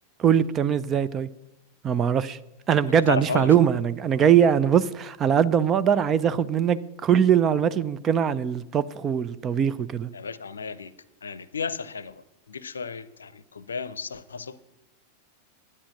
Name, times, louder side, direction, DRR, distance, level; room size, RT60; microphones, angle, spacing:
voice 1, 0.2-1.3 1.8-2.4 2.7-10.1, right 8 dB, 25° right, 0.5 m, -21 dB
voice 2, 2.9-3.5 10.1-10.9 11.2-14.6, left 5 dB, 70° left, 0.6 m, -33 dB
11.5 x 9.8 x 6.5 m
figure-of-eight pair, 90°, 0 cm